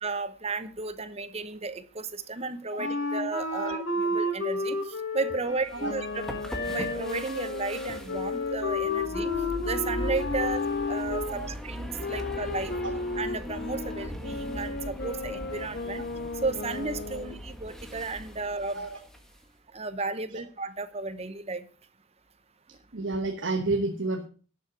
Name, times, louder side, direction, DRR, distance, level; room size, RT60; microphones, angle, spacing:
voice 1, 0.0-4.8 5.1-6.2 6.7-9.3 9.6-10.6 10.9-12.7 13.2-16.1 16.4-18.8 19.7-21.6, right 3 dB, 30° right, 12 dB, 0.9 m, -33 dB
Wind instrument woodwind instrument, 2.8-11.2, left 2 dB, 75° left, 4.1 m, -32 dB
sound 1, 5.6-19.4, equal, ahead, 1.5 m, -40 dB
sound 2, 5.8-11.3 12.0-17.5, left 3 dB, 50° left, 0.8 m, -35 dB
voice 2, 22.9-24.3, right 2 dB, 60° right, 5 dB, 1.2 m, -31 dB
11.5 x 7.6 x 6.2 m, 0.39 s
head